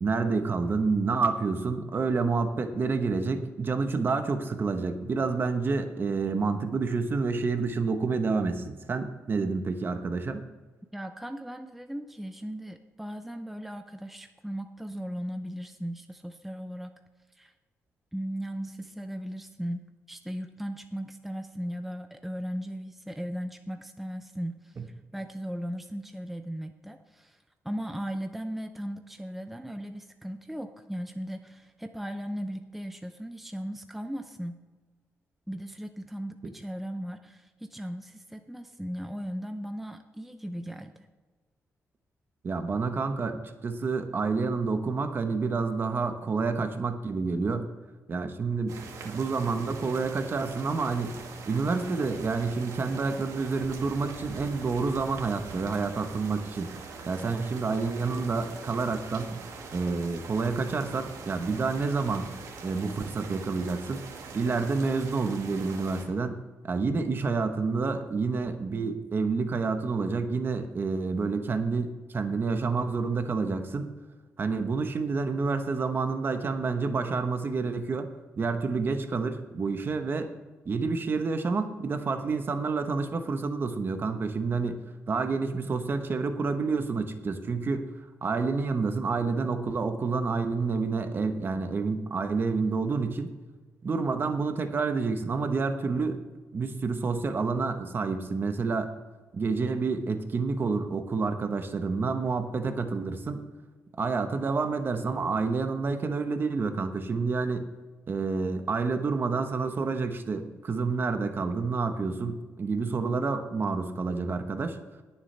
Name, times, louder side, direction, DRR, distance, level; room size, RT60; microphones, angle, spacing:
voice 1, 0.0-10.4 24.8-24.9 42.4-47.7 48.1-48.8 49.0-56.7 57.0-59.4 59.7-62.3 62.6-64.0 64.3-73.9 74.4-78.1 78.4-80.3 80.6-87.9 88.2-93.3 93.8-96.2 96.5-98.9 99.3-103.4 104.0-107.7 108.1-114.8, right 4 dB, 40° right, 7 dB, 1.1 m, -29 dB
voice 2, 10.9-17.0 17.3-17.5 18.1-34.6 35.5-41.1, equal, 5° right, 7 dB, 0.6 m, -37 dB
sound 1, 48.7-66.0, right 4 dB, 80° right, 1.8 m, -43 dB
21.0 x 7.2 x 3.4 m, 1.3 s
cardioid pair, 110°, 5 cm